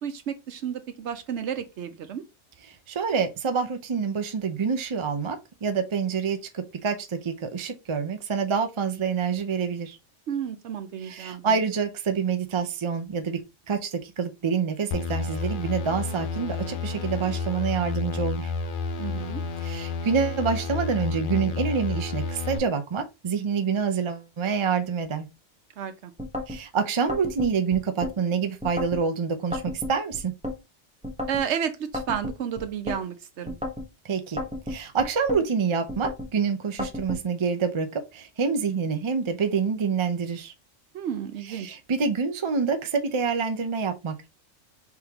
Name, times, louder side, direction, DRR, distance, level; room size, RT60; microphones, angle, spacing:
voice 1, 0.0-2.2 10.3-11.6 19.0-19.4 25.8-26.1 31.3-33.6 40.9-41.8, right 8 dB, 70° right, 1.0 m, -32 dB
voice 2, 2.9-10.0 11.0-18.5 19.6-25.3 26.5-30.3 34.0-34.4 34.7-40.5 41.4-44.3, right 5 dB, 40° right, 0.4 m, -27 dB
sound 1, 14.9-22.6, left 4 dB, 55° left, 0.7 m, -30 dB
sound 2, 26.2-26.6 27.1-28.2 28.6-29.0 29.5-30.6 31.0-31.5 31.9-33.0 33.5-33.9 34.4-35.4 35.9-36.3 36.8-37.2, left 1 dB, 5° right, 1.0 m, -33 dB
4.6 x 3.6 x 2.9 m
omnidirectional pair, 1.2 m